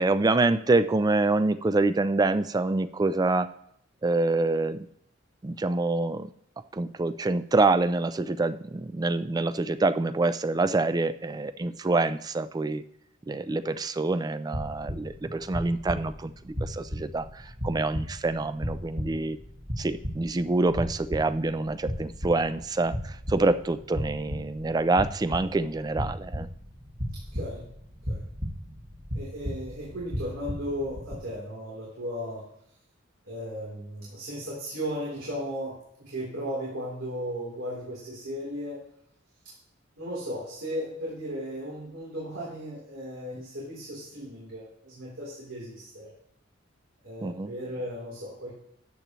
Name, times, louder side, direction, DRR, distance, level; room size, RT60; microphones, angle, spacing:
voice 1, 0.0-3.5 4.0-4.8 5.4-6.3 6.7-12.8 13.3-19.4 19.8-26.5 47.2-47.5, right 2 dB, 20° right, 13 dB, 0.3 m, -26 dB
sound 1, 14.5-31.2, equal, 35° right, 1.6 m, -36 dB
voice 2, 27.3-27.7 28.1-28.3 29.1-32.5 33.3-38.8 40.0-46.1 47.0-48.5, equal, 90° right, -6 dB, 3.5 m, -36 dB
13.5 x 8.8 x 3.1 m, 0.73 s
head